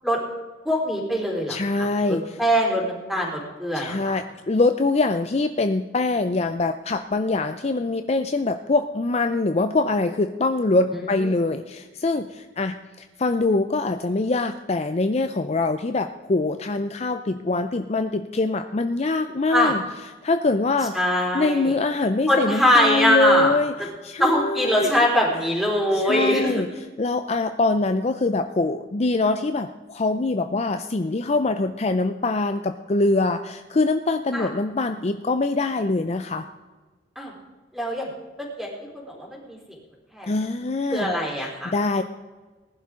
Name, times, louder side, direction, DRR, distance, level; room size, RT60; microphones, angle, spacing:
voice 1, 0.7-1.9 2.4-4.2 10.9-11.3 19.5-19.7 20.9-21.7 22.3-23.6 24.2-26.8 34.3-34.5 37.2-37.3 37.7-38.1 38.4-38.7 38.9-39.6 40.1-40.3 40.9-41.7, equal, ahead, -3 dB, 3.8 m, -22 dB
voice 2, 1.5-2.2 3.7-12.7 13.2-19.8 20.2-20.9 21.3-23.7 24.0-24.9 25.9-26.7 27.0-36.5 40.2-41.1 41.4-42.0, left 3 dB, 40° left, 8 dB, 0.5 m, -23 dB
19.5 x 11.0 x 3.8 m, 1.3 s
head